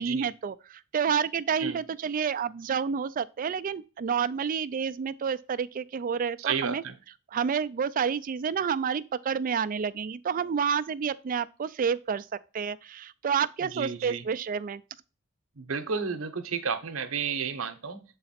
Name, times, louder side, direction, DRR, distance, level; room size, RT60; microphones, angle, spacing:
voice 1, 0.0-6.8 7.3-12.3 12.5-14.8, right 6 dB, 40° right, 0.3 m, -29 dB
voice 2, 6.4-6.9 13.7-14.2 15.6-18.0, right 6 dB, 80° right, 0.8 m, -32 dB
6.7 x 4.0 x 4.1 m
head